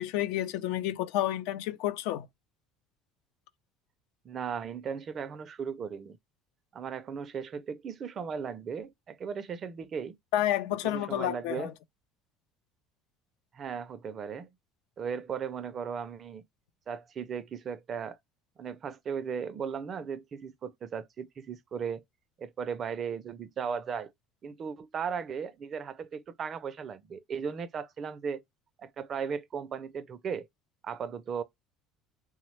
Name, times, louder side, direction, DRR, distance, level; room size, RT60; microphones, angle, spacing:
voice 1, 0.0-2.3 10.3-11.7, left 13 dB, 80° left, 0.3 m, -30 dB
voice 2, 4.2-6.2 6.7-10.2 10.8-11.7 13.5-14.5 15.0-16.4 16.9-18.2 18.6-22.0 22.4-24.1 24.4-28.4 28.8-30.5 30.8-31.4, right 6 dB, 35° right, 0.4 m, -36 dB
3.2 x 2.0 x 3.0 m
cardioid pair, 125°, 0 cm